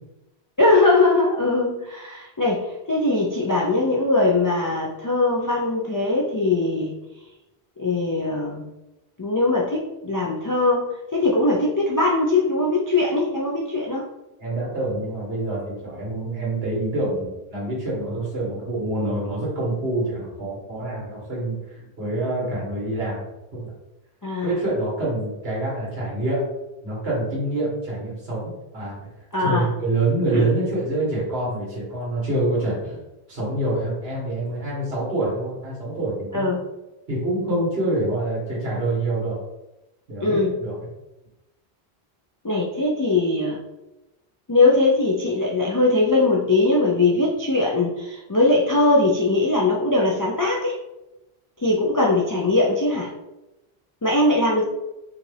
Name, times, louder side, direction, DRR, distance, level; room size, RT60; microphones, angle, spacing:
voice 1, 0.6-6.9 7.8-8.7 9.2-14.1 24.2-24.6 29.3-29.7 30.3-30.5 36.3-36.6 40.2-40.6 42.4-43.6 44.5-50.8 51.6-53.1 54.0-54.7, left 2 dB, 35° left, -3 dB, 0.3 m, -21 dB
voice 2, 14.4-23.2 23.5-23.7 24.4-26.4 26.8-29.0 29.4-33.0 33.3-36.5 37.1-39.4 40.1-40.9, right 2 dB, 70° right, -5 dB, 1.9 m, -26 dB
4.9 x 2.4 x 3.3 m, 0.98 s
omnidirectional pair, 1.1 m